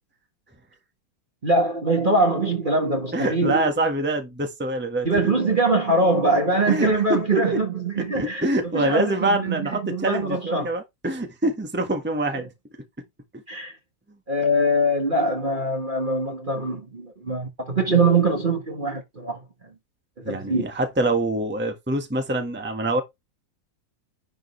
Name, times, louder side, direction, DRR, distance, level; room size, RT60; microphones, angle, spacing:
voice 1, 1.4-3.6 5.0-8.4 8.7-10.7 13.5-13.7 14.3-19.4 20.2-20.6, right 2 dB, 30° right, 1.5 m, -23 dB
voice 2, 3.1-5.1 6.7-7.6 7.9-12.5 20.2-23.0, right 1 dB, 5° right, 1.4 m, -25 dB
10.5 x 5.2 x 3.3 m
omnidirectional pair, 2.0 m